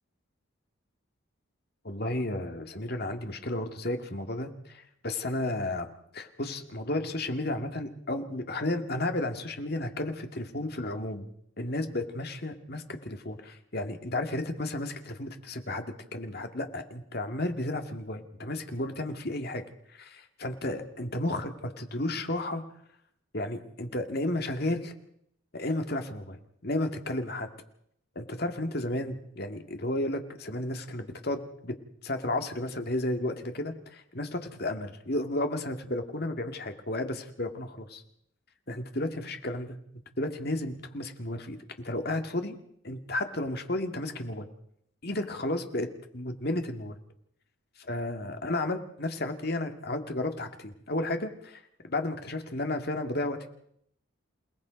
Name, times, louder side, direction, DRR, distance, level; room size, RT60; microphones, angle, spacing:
voice 1, 1.8-11.3 11.6-15.9 16.1-19.6 19.9-22.6 23.3-24.9 25.5-27.5 28.2-31.7 32.0-38.0 38.7-39.8 40.2-41.6 41.8-42.6 42.8-44.5 45.0-45.9 46.1-47.0 47.9-53.5, left 1 dB, 50° left, 6 dB, 2.1 m, -33 dB
28.5 x 18.5 x 5.2 m, 0.71 s
head